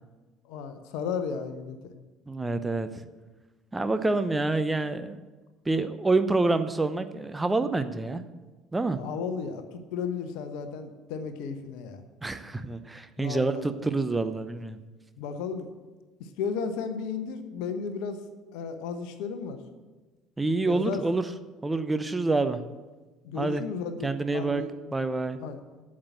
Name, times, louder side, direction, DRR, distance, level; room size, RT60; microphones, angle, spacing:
voice 1, 0.4-1.9 8.9-12.0 13.2-13.7 15.2-15.7 16.2-18.2 18.5-19.6 20.6-21.0 23.2-24.7 25.4-25.6, left 6 dB, 60° left, 9 dB, 1.0 m, -34 dB
voice 2, 2.3-2.9 3.7-5.2 5.7-8.2 8.7-9.0 12.2-14.8 20.4-21.2 21.6-22.6 23.3-23.6 24.0-24.6 24.9-25.4, right 3 dB, 15° right, 10 dB, 0.7 m, -27 dB
8.7 x 7.5 x 8.3 m, 1.3 s
figure-of-eight pair, 55°, 0 cm